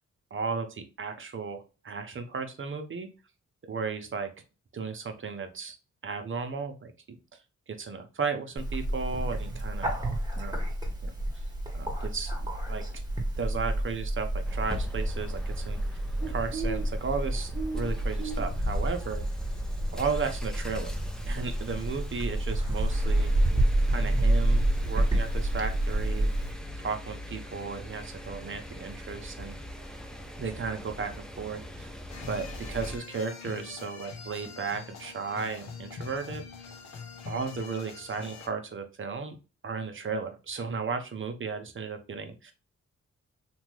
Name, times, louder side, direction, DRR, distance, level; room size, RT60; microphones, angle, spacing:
voice 1, 0.3-3.1 3.7-4.3 4.7-5.8 6.0-7.2 7.7-9.9 10.3-10.6 11.0-11.1 11.7-12.3 12.7-12.9 13.4-16.0 16.3-19.2 19.9-21.0 21.3-23.3 23.8-26.3 26.8-29.5 30.4-31.9 32.3-36.4 37.3-39.4 39.6-42.5, right 5 dB, 45° right, 7 dB, 0.6 m, -34 dB
Bird, 8.6-26.5, right 1 dB, 15° right, 1.0 m, -29 dB
sound 1, 14.4-33.0, equal, ahead, 0.5 m, -41 dB
sound 2, 32.1-38.5, left 5 dB, 65° left, 0.7 m, -43 dB
2.9 x 2.2 x 3.1 m, 0.31 s
cardioid pair, 65°, 29 cm